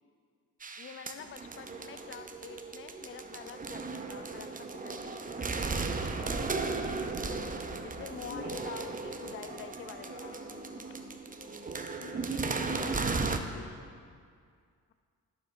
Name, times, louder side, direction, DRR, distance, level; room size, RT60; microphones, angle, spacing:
sound 1, 0.6-13.4, right 4 dB, 20° right, 0.6 m, -36 dB
voice 1, 0.8-5.5 7.8-10.3, left 7 dB, 30° left, 9 dB, 0.5 m, -46 dB
voice 2, 5.9-7.8 8.2-8.7 10.0-13.9, left 7 dB, 85° left, 6 dB, 0.6 m, -51 dB
10.5 x 6.5 x 2.6 m, 2.2 s
hypercardioid pair, 40°, 40 cm